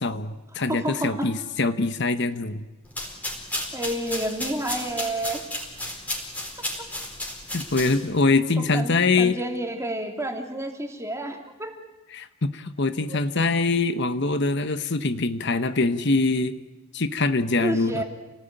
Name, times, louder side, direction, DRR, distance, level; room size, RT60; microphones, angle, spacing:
voice 1, 0.0-2.6 7.5-9.4 12.1-16.6 16.9-18.0, left 3 dB, 55° left, 10 dB, 1.1 m, -23 dB
voice 2, 0.7-1.3 3.7-5.4 6.8-6.9 8.7-11.7 13.1-13.2 17.6-18.0, right 1 dB, 15° right, 3 dB, 3.0 m, -30 dB
sound 1, 2.8-8.2, left 1 dB, 5° left, 4.5 m, -33 dB
29.0 x 19.0 x 9.0 m, 1.1 s
head